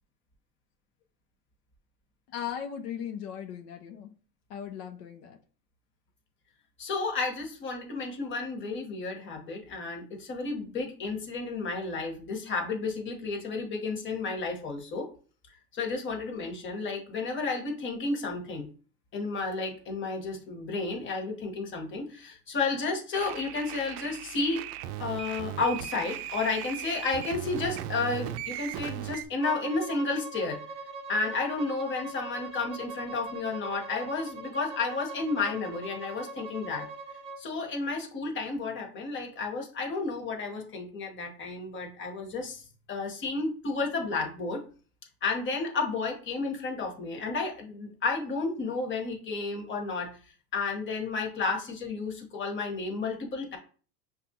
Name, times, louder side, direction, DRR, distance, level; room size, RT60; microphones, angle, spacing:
voice 1, 2.3-4.1 4.5-5.4, left 8 dB, 70° left, 4 dB, 0.8 m, -37 dB
voice 2, 6.8-15.1 15.7-18.7 19.1-24.6 25.0-30.6 31.1-36.9 37.4-42.6 42.9-44.6 45.2-50.1 50.5-53.6, left 3 dB, 25° left, 1 dB, 1.1 m, -32 dB
sound 1, 23.1-29.3, right 12 dB, 70° right, 0.5 m, -38 dB
Bowed string instrument, 29.4-37.4, right 3 dB, 15° right, 0.4 m, -41 dB
5.6 x 2.5 x 2.7 m, 0.39 s
supercardioid pair, 130°, 50 cm